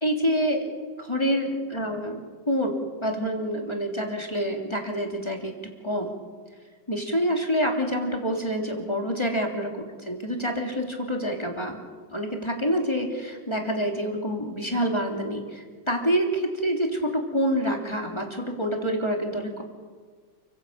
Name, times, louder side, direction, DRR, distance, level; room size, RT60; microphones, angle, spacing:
voice 1, 0.0-0.7 1.0-2.7 3.0-5.5 5.8-6.2 6.9-9.7 10.0-11.8 12.1-19.6, equal, 15° left, 2 dB, 3.3 m, -27 dB
29.5 x 16.5 x 8.7 m, 1.5 s
omnidirectional pair, 2.2 m